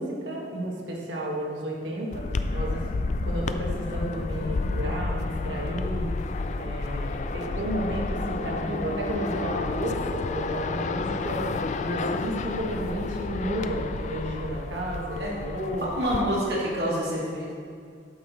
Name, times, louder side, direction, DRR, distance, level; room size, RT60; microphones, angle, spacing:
voice 1, 0.0-2.2 2.5-2.8 3.2-6.1 6.6-11.5 11.8-15.8, right 1 dB, 90° right, -3 dB, 1.6 m, -32 dB
sound 1, 2.1-16.2, left 3 dB, 40° left, 0.3 m, -30 dB
voice 2, 15.8-17.5, equal, 65° right, -6 dB, 1.8 m, -27 dB
8.9 x 6.0 x 4.1 m, 2.3 s
head